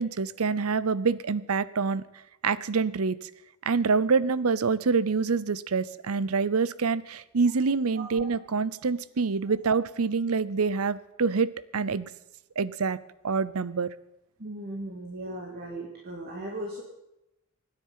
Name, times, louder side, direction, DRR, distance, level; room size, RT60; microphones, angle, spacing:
voice 1, 0.0-2.0 2.4-3.3 3.6-12.1 12.6-13.0 13.2-13.9, right 5 dB, 80° right, 18 dB, 0.7 m, -26 dB
voice 2, 7.9-8.3 14.4-16.8, right 1 dB, 45° right, -1 dB, 2.4 m, -37 dB
24.5 x 9.9 x 5.7 m, 0.91 s
head